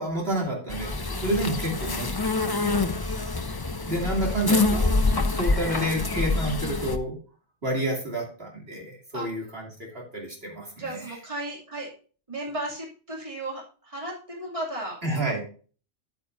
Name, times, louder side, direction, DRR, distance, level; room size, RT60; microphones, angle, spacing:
voice 1, 0.0-2.8 3.8-5.0 5.3-7.2 7.6-11.2 15.0-15.4, right 1 dB, 55° right, -1 dB, 2.9 m, -30 dB
sound 1, 0.7-7.0, left 3 dB, 25° left, 0.6 m, -26 dB
voice 2, 10.8-11.9 12.3-15.0, right 1 dB, 25° right, -2 dB, 2.8 m, -35 dB
10.0 x 9.1 x 2.7 m, 0.38 s
omnidirectional pair, 1.2 m